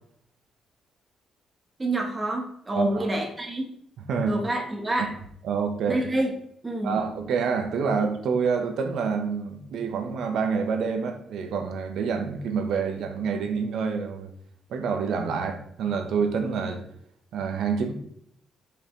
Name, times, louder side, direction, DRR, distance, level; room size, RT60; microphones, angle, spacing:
voice 1, 1.8-3.7 4.3-5.1 5.9-6.3 6.6-6.9, right 1 dB, 15° right, 1.1 m, -27 dB
voice 2, 2.7-3.1 4.1-4.4 5.4-6.0 6.8-14.3 14.7-16.9 17.3-17.9, right 5 dB, 65° right, 1.0 m, -27 dB
7.0 x 5.5 x 3.2 m
cardioid pair, 180°, 0 cm